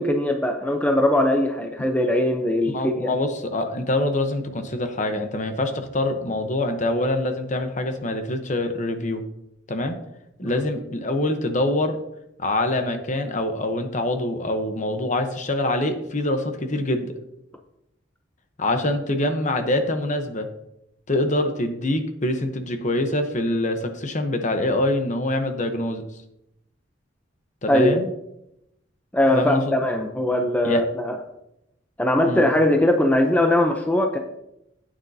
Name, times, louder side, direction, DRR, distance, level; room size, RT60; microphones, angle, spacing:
voice 1, 0.0-3.1 10.4-10.6 27.7-28.0 29.1-31.2 32.0-34.2, left 1 dB, 10° left, 3 dB, 0.6 m, -20 dB
voice 2, 2.7-9.2 9.7-10.0 10.4-12.0 12.4-17.1 18.6-20.5 21.1-26.0 27.6-28.1 29.3-29.6 30.6-30.8 32.3-32.5, left 1 dB, 40° left, 7 dB, 0.9 m, -25 dB
11.5 x 9.0 x 2.7 m, 0.83 s
head